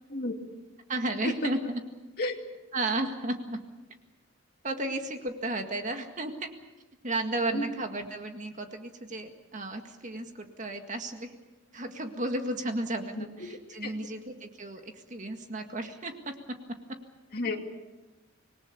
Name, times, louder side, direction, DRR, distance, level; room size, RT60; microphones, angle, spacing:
voice 1, 0.9-1.8 2.7-3.6 4.6-6.5 7.0-11.3 11.7-17.0, right 2 dB, 40° right, 5 dB, 1.9 m, -33 dB
voice 2, 13.1-13.9 17.3-17.6, left 2 dB, 50° left, 2 dB, 2.6 m, -32 dB
26.0 x 20.0 x 6.9 m, 1.1 s
head